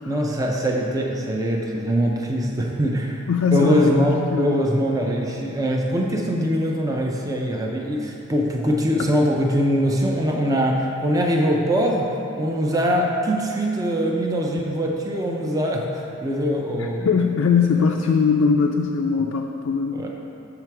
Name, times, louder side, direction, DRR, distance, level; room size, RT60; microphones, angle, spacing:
voice 1, 0.1-3.2 3.5-17.3 19.9-20.1, equal, 15° right, 0 dB, 0.5 m, -22 dB
voice 2, 3.3-4.6 9.0-9.1 16.7-20.1, left 5 dB, 85° left, 2 dB, 0.4 m, -21 dB
6.8 x 6.0 x 4.6 m, 2.9 s
head